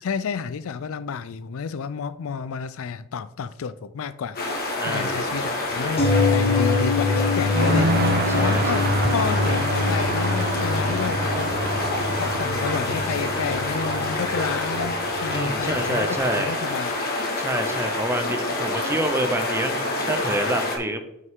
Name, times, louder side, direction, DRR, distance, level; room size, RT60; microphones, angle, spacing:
voice 1, 0.0-4.4 4.7-7.9 8.3-11.5 12.2-17.0, left 6 dB, 65° left, 0.4 m, -30 dB
sound 1, 4.4-20.8, left 2 dB, 45° left, 1.8 m, -27 dB
voice 2, 4.8-5.2 8.3-8.8 15.3-16.5 17.4-21.0, right 1 dB, 10° right, 0.7 m, -27 dB
sound 2, 6.0-15.8 16.1-16.2, left 3 dB, 30° left, 1.7 m, -25 dB
sound 3, 7.5-15.8, right 2 dB, 45° right, 0.8 m, -29 dB
9.5 x 5.4 x 3.7 m
head